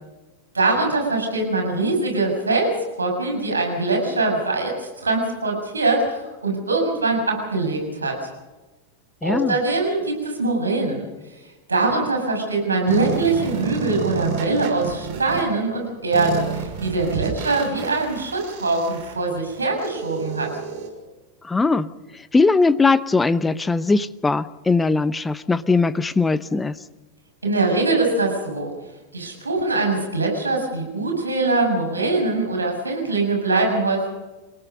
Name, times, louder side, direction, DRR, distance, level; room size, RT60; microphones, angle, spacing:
voice 1, 0.5-8.2 9.2-11.1 11.7-20.5 27.4-28.7 29.1-34.1, right 3 dB, 75° right, 2 dB, 7.1 m, -22 dB
voice 2, 9.2-9.6 21.4-26.8, left 3 dB, 10° left, 17 dB, 0.9 m, -20 dB
sound 1, 12.9-15.4 16.1-20.9, right 7 dB, 50° right, 6.2 m, -30 dB
29.0 x 18.5 x 5.4 m, 1.2 s
figure-of-eight pair, 90°, 0 cm